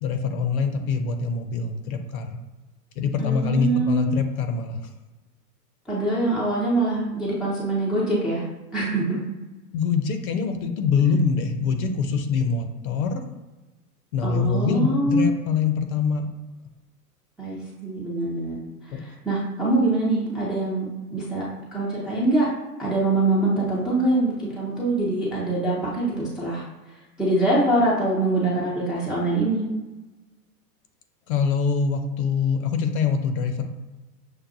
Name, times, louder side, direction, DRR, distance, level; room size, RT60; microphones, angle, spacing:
voice 1, 0.0-2.3 3.0-4.8 9.7-13.2 14.1-16.3 18.9-19.0 31.3-33.7, left 5 dB, 60° left, 6 dB, 0.8 m, -24 dB
voice 2, 3.2-4.1 5.9-8.4 8.7-9.2 14.2-15.3 17.4-18.6 19.0-20.9 21.1-22.5 22.8-26.7 27.2-29.7, right 2 dB, ahead, -7 dB, 0.4 m, -24 dB
6.4 x 2.2 x 2.6 m, 1.1 s
hypercardioid pair, 105°, 48 cm